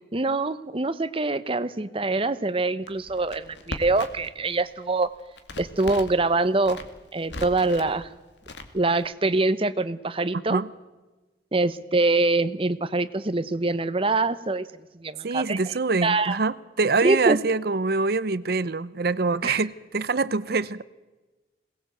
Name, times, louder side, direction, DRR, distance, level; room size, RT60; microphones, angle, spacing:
voice 1, 0.1-5.1 5.6-6.8 7.1-8.1 8.7-10.6 11.5-14.7 15.0-15.6 16.0-16.4 17.0-17.4 19.4-19.6, right 2 dB, 30° right, 0.9 m, -24 dB
Crackle, 2.9-4.3 4.6-6.2 6.6-7.9 8.4-9.0, left 2 dB, 80° left, 2.2 m, -38 dB
voice 2, 15.2-20.8, right 3 dB, 60° right, 0.7 m, -25 dB
22.0 x 19.0 x 8.0 m
head